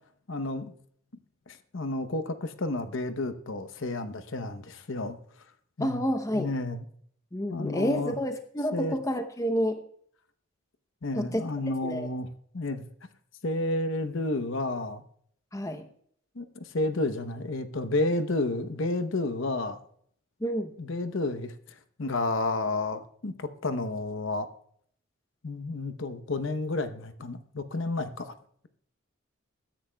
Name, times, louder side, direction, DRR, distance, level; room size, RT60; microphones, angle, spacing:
voice 1, 0.3-0.7 1.5-5.2 5.8-6.0 6.3-6.8 7.5-8.1 8.7-9.0 11.0-12.3 12.5-12.9 13.4-15.0 16.4-19.8 20.8-21.5 22.0-24.5 25.4-28.3, left 2 dB, 60° left, 10 dB, 0.8 m, -31 dB
voice 2, 5.8-6.5 7.3-9.8 11.2-11.5 11.8-12.1 15.5-15.9 20.4-20.7, equal, 15° left, 6 dB, 0.7 m, -29 dB
21.5 x 10.0 x 2.3 m, 0.63 s
head